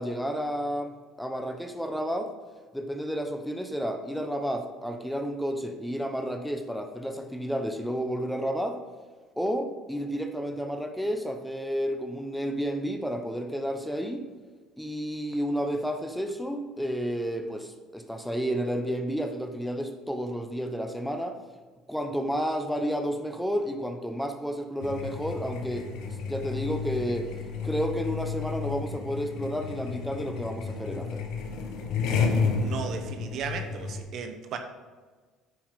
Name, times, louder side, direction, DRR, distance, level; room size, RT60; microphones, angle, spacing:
voice 1, 0.0-2.3 2.7-8.8 9.4-14.2 14.8-21.4 21.9-25.9 26.3-27.3 27.6-31.2, equal, ahead, 6 dB, 1.1 m, -31 dB
sound 1, 24.8-34.0, left 5 dB, 75° left, 1.3 m, -31 dB
voice 2, 32.6-34.6, right 6 dB, 60° right, 6 dB, 1.1 m, -35 dB
9.2 x 5.7 x 5.3 m, 1.4 s
supercardioid pair, 80°, 0 cm